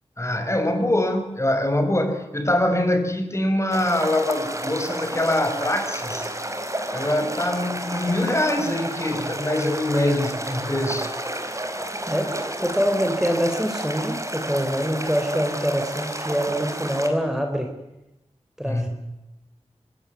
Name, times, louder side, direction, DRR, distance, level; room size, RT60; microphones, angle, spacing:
voice 1, 0.2-6.3 6.9-11.1 18.6-18.9, left 1 dB, 25° left, 6 dB, 5.5 m, -24 dB
sound 1, 3.7-17.1, right 1 dB, 25° right, 5.1 m, -31 dB
voice 2, 12.1-17.7 18.6-18.9, equal, 5° right, 5 dB, 4.3 m, -25 dB
26.0 x 19.0 x 9.5 m, 0.94 s
wide cardioid pair, 55°, 12 cm